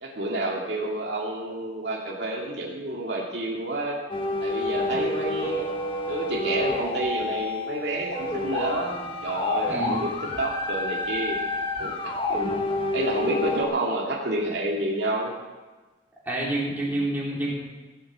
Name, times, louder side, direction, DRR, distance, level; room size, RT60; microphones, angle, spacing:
voice 1, 0.0-4.0 4.4-5.7 6.1-10.1 10.4-11.4 11.8-12.6 12.9-15.3, right 1 dB, 65° right, -2 dB, 2.4 m, -29 dB
sound 1, 4.1-13.6, left 2 dB, 30° left, 1.5 m, -29 dB
voice 2, 9.7-10.0 16.2-17.5, right 1 dB, 10° right, -5 dB, 3.5 m, -28 dB
16.0 x 8.1 x 7.3 m, 1.3 s
head